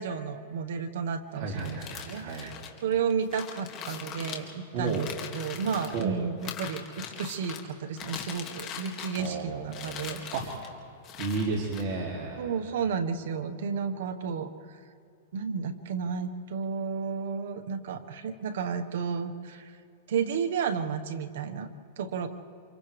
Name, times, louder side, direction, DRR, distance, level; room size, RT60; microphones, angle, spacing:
voice 1, 0.0-2.5 2.8-10.2 12.4-14.5 15.3-19.7 20.1-21.7 22.0-22.3, right 6 dB, 70° right, 6 dB, 1.3 m, -32 dB
voice 2, 1.3-2.5 4.7-5.1 5.9-6.1 9.2-10.7 11.2-12.5, right 4 dB, 50° right, -2 dB, 2.7 m, -33 dB
sound 1, 1.5-6.0 6.4-7.6 8.0-9.4 9.7-10.7 11.0-11.8, left 8 dB, 35° left, 2.2 m, -41 dB
29.5 x 27.0 x 3.4 m, 2.5 s
hypercardioid pair, 140°, 0 cm